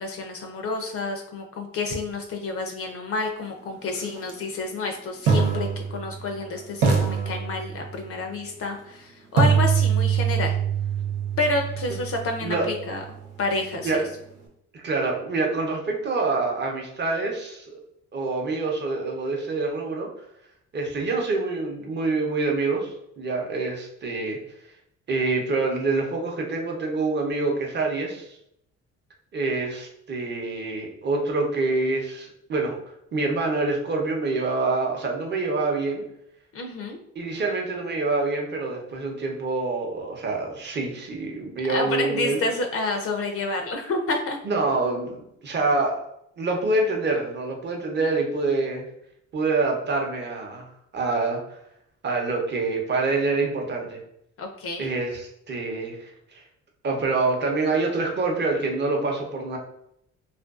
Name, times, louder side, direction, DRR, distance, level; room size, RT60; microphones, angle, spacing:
voice 1, 0.0-10.5 11.4-13.0 13.4-14.1 36.5-37.0 41.7-44.4 54.4-54.9, left 3 dB, 50° left, 4 dB, 0.4 m, -29 dB
sound 1, 4.2-4.3 5.3-6.4 6.8-8.1 9.4-13.3, right 6 dB, 90° right, 0.6 m, -24 dB
voice 2, 14.7-17.8 18.1-20.1 20.7-24.4 25.1-28.3 29.3-32.8 33.1-36.0 37.1-42.4 44.4-46.0 46.4-48.9 49.3-50.7 50.9-51.6 52.0-54.0 54.8-56.4 56.8-59.6, right 3 dB, 35° right, 1 dB, 0.6 m, -26 dB
2.5 x 2.2 x 2.3 m, 0.75 s
cardioid pair, 90°, 30 cm